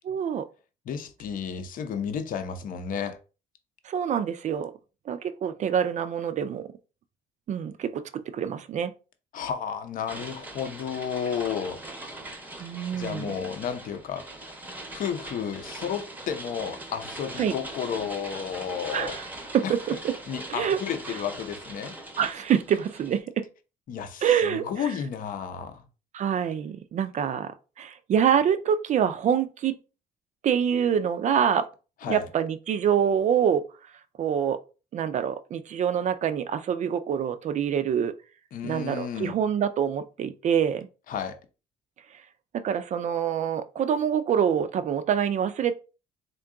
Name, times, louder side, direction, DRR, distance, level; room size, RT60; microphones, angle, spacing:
voice 1, 0.1-0.5 3.9-4.7 5.1-6.6 7.5-8.9 12.6-13.3 17.4-17.5 18.9-19.2 19.5-20.1 20.5-20.8 22.2-23.4 24.2-24.7 26.1-27.5 27.8-29.8 30.4-31.7 32.1-33.6 34.2-34.6 34.9-38.1 38.6-40.9 42.5-45.7, right 8 dB, 45° right, 0.4 m, -25 dB
voice 2, 0.9-3.2 9.3-11.8 12.9-14.3 14.9-19.1 19.6-19.8 20.3-21.9 23.9-25.8 32.0-32.3 38.5-39.4 41.1-41.4, left 7 dB, 55° left, 0.6 m, -32 dB
sound 1, 10.1-23.2, right 1 dB, 10° right, 0.7 m, -41 dB
3.7 x 2.3 x 3.6 m
cardioid pair, 110°, 17 cm